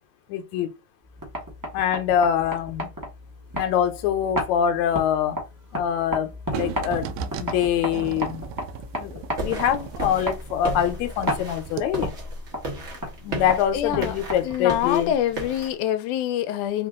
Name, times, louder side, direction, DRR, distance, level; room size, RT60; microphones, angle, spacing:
voice 1, 0.3-0.7 1.7-2.9 3.6-5.4 5.7-7.1 7.4-8.5 9.0-12.1 13.2-15.1, left 9 dB, 75° left, 2.0 m, -24 dB
sound 1, 1.0-14.8, equal, 20° right, 0.5 m, -34 dB
sound 2, 6.5-11.4 11.7-11.8, right 9 dB, 80° right, 1.9 m, -35 dB
sound 3, 9.4-15.7, right 1 dB, 60° right, 0.7 m, -34 dB
voice 2, 13.7-14.2 14.4-16.9, left 10 dB, 90° left, 2.1 m, -25 dB
5.1 x 2.5 x 3.6 m
omnidirectional pair, 3.4 m